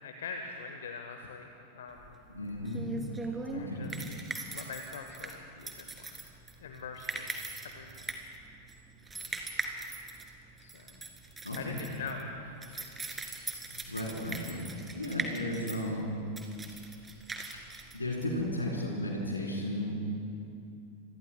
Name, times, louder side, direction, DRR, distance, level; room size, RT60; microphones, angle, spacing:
voice 1, 0.0-1.5 1.7-2.1 3.5-3.9 4.5-6.2 6.6-7.3 7.7-8.1 8.5-8.7 9.1-9.4 10.6-10.9 11.5-13.2, left 4 dB, 60° left, 5 dB, 1.0 m, -44 dB
sound 1, 2.0-18.7, right 3 dB, 15° right, 2.1 m, -41 dB
voice 2, 2.3-2.9 3.5-3.9 11.4-11.8 13.7-14.7 14.9-16.1 17.9-20.0, left 1 dB, 80° left, -2 dB, 3.8 m, -34 dB
27.0 x 22.0 x 2.2 m, 2.6 s
figure-of-eight pair, 90°, 0 cm